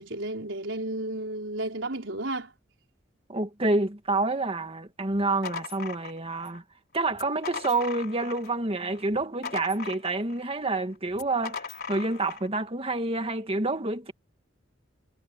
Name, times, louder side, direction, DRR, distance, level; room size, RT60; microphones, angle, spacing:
voice 1, 0.0-2.5, right 2 dB, 70° right, 4.9 m, -32 dB
voice 2, 3.3-6.6 6.9-14.1, right 2 dB, 30° right, 1.9 m, -28 dB
sound 1, 5.1-6.6 7.1-8.6 8.9-10.4 11.1-12.5, left 6 dB, 55° left, 4.4 m, -39 dB
head